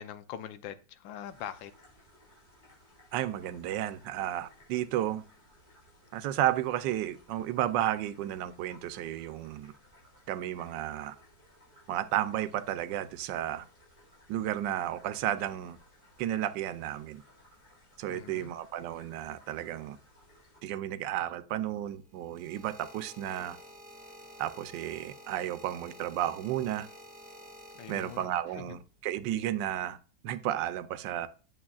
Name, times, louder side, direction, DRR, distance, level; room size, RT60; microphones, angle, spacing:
voice 1, 0.0-1.7 18.1-18.5 27.7-28.7, left 10 dB, 90° left, 1.4 m, -43 dB
sound 1, 1.2-20.6, left 1 dB, 25° left, 4.4 m, -60 dB
voice 2, 3.1-5.2 6.1-9.7 10.3-11.1 11.9-13.6 14.3-15.8 16.2-17.2 18.0-20.0 20.6-23.6 24.4-26.9 27.9-30.0 30.2-31.3, right 12 dB, 75° right, 1.2 m, -32 dB
sound 2, 21.9-28.7 29.5-29.9, equal, 5° right, 1.7 m, -51 dB
8.6 x 7.2 x 2.3 m
omnidirectional pair, 2.0 m